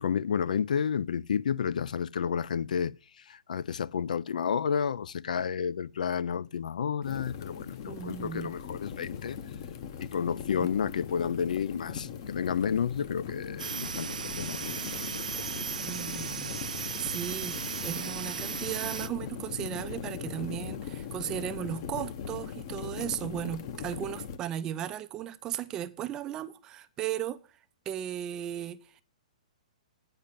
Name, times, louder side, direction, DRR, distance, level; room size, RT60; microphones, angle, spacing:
voice 1, 0.0-9.4 10.0-14.9, left 7 dB, 80° left, 0.4 m, -31 dB
sound 1, 7.0-24.4, left 7 dB, 35° left, 0.8 m, -40 dB
voice 2, 7.9-8.5 10.6-10.7 15.8-27.4 27.9-29.0, right 11 dB, 15° right, 0.4 m, -36 dB
sound 2, 13.6-19.1, right 7 dB, 85° right, 0.5 m, -36 dB
sound 3, 14.4-20.2, left 3 dB, 55° left, 3.2 m, -50 dB
8.8 x 5.2 x 7.5 m
hypercardioid pair, 170°, 4 cm